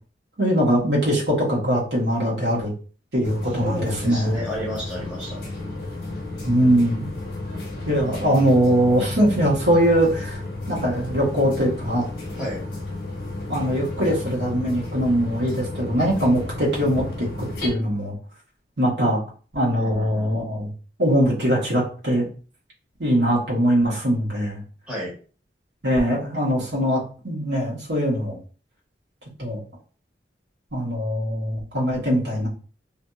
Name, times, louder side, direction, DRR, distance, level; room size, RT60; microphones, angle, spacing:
voice 1, 0.4-2.7 3.1-3.8 4.0-4.4 6.4-7.1 7.9-10.4 10.7-12.1 13.5-18.1 18.8-19.2 19.5-20.7 21.0-22.3 23.0-24.6 25.8-28.4 29.4-29.6 30.7-32.5, equal, 80° right, -5 dB, 1.3 m, -21 dB
sound 1, 3.2-17.7, left 2 dB, 55° left, 1.0 m, -33 dB
voice 2, 3.6-5.4 8.0-8.2 12.4-12.6 19.7-20.4 24.9-25.1, equal, 5° right, -8 dB, 1.2 m, -32 dB
2.7 x 2.6 x 2.3 m, 0.39 s
head